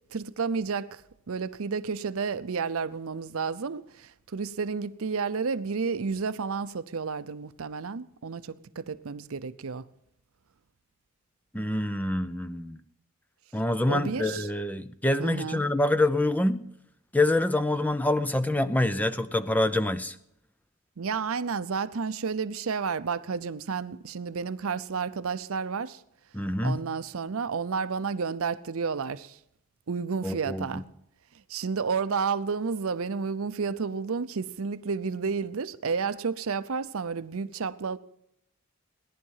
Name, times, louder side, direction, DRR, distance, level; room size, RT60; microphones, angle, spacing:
voice 1, 0.1-1.0 1.3-9.9 13.9-14.5 15.2-15.6 21.0-26.0 26.6-29.4 29.9-30.8 31.5-38.0, right 5 dB, 70° right, 0.6 m, -31 dB
voice 2, 11.5-12.8 13.5-16.7 17.1-20.2 26.3-26.8 30.2-30.8, left 1 dB, 5° left, 0.5 m, -26 dB
18.0 x 11.0 x 5.6 m
head